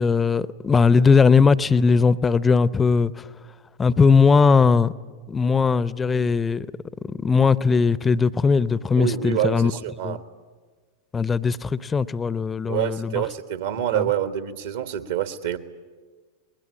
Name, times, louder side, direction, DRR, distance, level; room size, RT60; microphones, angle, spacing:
voice 1, 0.0-3.3 3.8-4.9 5.3-6.7 7.1-9.7 10.0-10.2 11.1-13.2 13.9-14.0, left 5 dB, 15° left, 0.7 m, -19 dB
voice 2, 9.0-10.2 12.7-15.6, right 11 dB, 60° right, 1.5 m, -26 dB
26.5 x 21.0 x 8.6 m
figure-of-eight pair, 90°, 0 cm